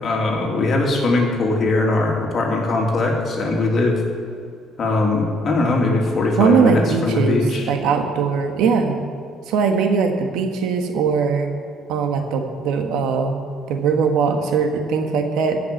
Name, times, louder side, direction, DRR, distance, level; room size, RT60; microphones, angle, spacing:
voice 1, 0.0-4.0 4.8-7.7, left 2 dB, 45° left, 0 dB, 2.7 m, -20 dB
voice 2, 6.4-7.4 7.7-9.0 9.5-11.5 11.9-13.4 13.7-15.6, right 5 dB, 80° right, 5 dB, 1.4 m, -20 dB
14.0 x 5.9 x 9.0 m, 2.2 s
cardioid pair, 110°, 0 cm